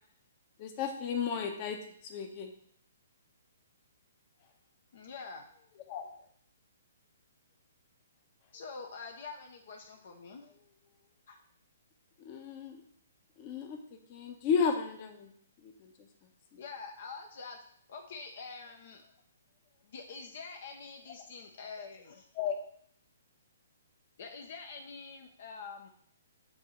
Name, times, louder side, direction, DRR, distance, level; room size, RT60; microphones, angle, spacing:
voice 1, 0.6-1.8 2.0-2.5 5.9-6.0 12.2-12.8 13.4-13.8 14.1-15.3 15.6-15.9 22.4-22.6, left 6 dB, 35° left, 4 dB, 0.9 m, -33 dB
voice 2, 4.9-6.3 8.5-11.0 11.3-11.4 16.6-17.6 17.9-19.2 19.8-22.3 24.2-25.9, left 4 dB, 55° left, 4 dB, 0.8 m, -46 dB
7.8 x 2.8 x 4.4 m, 0.63 s
hypercardioid pair, 135°, 0 cm